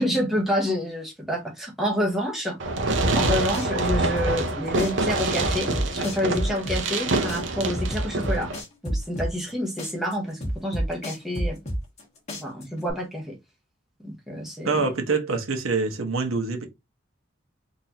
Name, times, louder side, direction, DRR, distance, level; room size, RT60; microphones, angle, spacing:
voice 1, 0.0-2.6 3.1-8.5 8.8-11.6 12.3-13.4 14.0-14.9, equal, ahead, 0.9 m, -28 dB
Fireworks, 2.6-8.6, right 2 dB, 65° right, 0.7 m, -26 dB
sound 1, 2.9-4.5 4.8-7.0 7.3-9.5 9.8-12.0 12.3-12.9, equal, 35° left, 1.4 m, -28 dB
voice 2, 14.6-16.7, right 4 dB, 90° right, 0.9 m, -25 dB
4.0 x 2.7 x 2.8 m
head